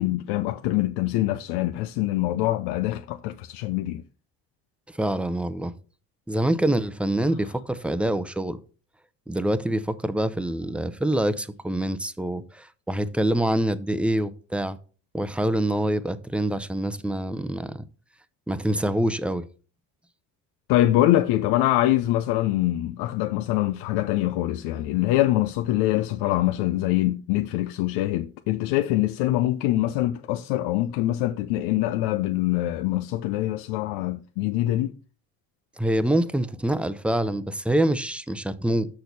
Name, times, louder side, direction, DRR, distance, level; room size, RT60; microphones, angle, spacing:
voice 1, 0.0-4.0 20.7-34.9, left 15 dB, 80° left, 0.6 m, -24 dB
voice 2, 4.9-5.7 6.3-8.6 9.3-14.8 15.1-17.9 18.5-19.5 35.8-38.9, right 1 dB, 5° right, 0.6 m, -25 dB
6.6 x 6.3 x 4.1 m
supercardioid pair, 75°, 41 cm